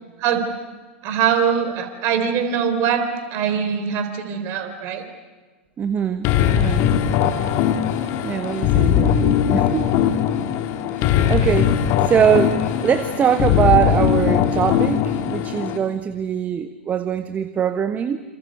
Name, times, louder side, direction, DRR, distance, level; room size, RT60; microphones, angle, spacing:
voice 1, 1.0-5.0, right 7 dB, 40° right, 7 dB, 4.1 m, -22 dB
voice 2, 5.8-6.9 8.2-10.1 10.8-18.2, right 8 dB, 25° right, 11 dB, 1.1 m, -22 dB
sound 1, 6.2-15.8, left 9 dB, 40° left, 2.1 m, -20 dB
28.0 x 28.0 x 6.6 m, 1.3 s
figure-of-eight pair, 95°, 6 cm